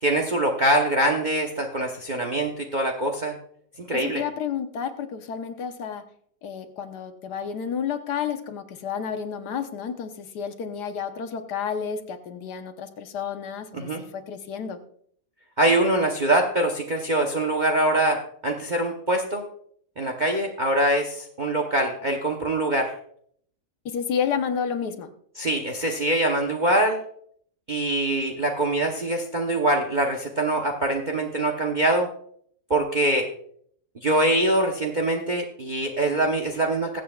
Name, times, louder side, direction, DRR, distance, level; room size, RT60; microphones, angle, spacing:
voice 1, 0.0-3.4 3.8-4.2 13.7-14.0 15.6-19.4 20.0-22.9 25.4-27.0 27.7-32.1 32.7-33.3 34.0-37.0, right 1 dB, 35° right, 2 dB, 0.9 m, -23 dB
voice 2, 3.9-6.0 6.4-14.8 23.8-25.1, left 7 dB, 85° left, 7 dB, 1.5 m, -31 dB
21.5 x 8.0 x 2.3 m, 0.63 s
omnidirectional pair, 1.7 m